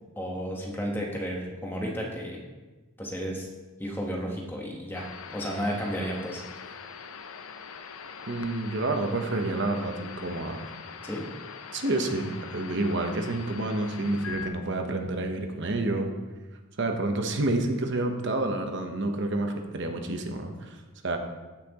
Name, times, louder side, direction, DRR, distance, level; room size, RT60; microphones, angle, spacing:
voice 1, 0.2-2.4 3.0-3.5 3.8-6.4 11.0-11.3, equal, 10° left, -1 dB, 1.2 m, -33 dB
sound 1, 4.9-14.5, left 6 dB, 75° left, 0.6 m, -42 dB
voice 2, 8.3-10.6 11.7-16.1 16.8-20.7 21.0-21.2, right 2 dB, 55° right, 4 dB, 1.0 m, -29 dB
15.0 x 5.9 x 3.0 m, 1.2 s
head